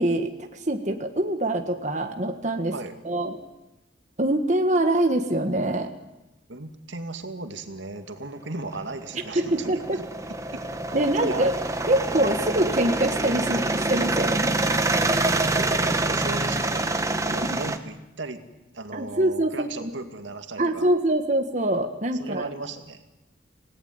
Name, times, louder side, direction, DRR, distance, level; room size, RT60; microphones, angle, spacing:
voice 1, 0.0-2.7 3.0-3.4 4.2-5.9 9.3-10.0 10.9-11.5 11.9-14.5 17.4-17.6 18.9-19.9 20.6-22.5, right 1 dB, 40° right, 5 dB, 1.6 m, -24 dB
voice 2, 6.5-10.0 10.5-10.6 10.9-11.5 15.4-18.4 18.7-20.9 22.2-23.0, right 2 dB, 80° right, 7 dB, 2.3 m, -36 dB
sound 1, 8.7-17.8, right 2 dB, 15° right, 1.3 m, -26 dB
27.5 x 18.0 x 9.6 m, 0.99 s
head